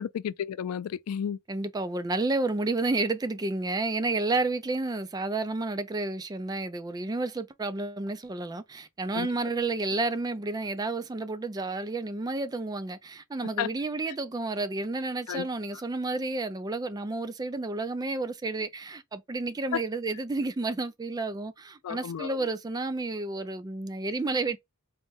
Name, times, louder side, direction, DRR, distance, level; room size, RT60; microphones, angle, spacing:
voice 1, 0.0-1.4 9.1-9.3 13.6-13.7 15.3-15.5 21.8-22.4, left 8 dB, 90° left, 0.3 m, -32 dB
voice 2, 1.5-24.6, right 2 dB, 15° right, 0.3 m, -31 dB
4.2 x 2.1 x 3.4 m
head